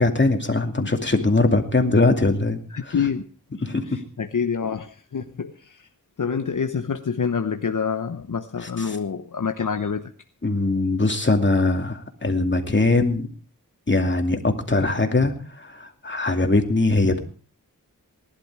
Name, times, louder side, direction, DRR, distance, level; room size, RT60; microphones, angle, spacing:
voice 1, 0.0-2.9 3.6-4.0 8.6-9.0 10.4-13.3 13.9-17.2, left 2 dB, 35° left, 4 dB, 2.6 m, -21 dB
voice 2, 2.7-3.2 3.9-5.9 6.2-10.1, left 6 dB, 65° left, 7 dB, 1.0 m, -27 dB
19.5 x 11.5 x 4.8 m, 0.39 s
wide cardioid pair, 70°, 34 cm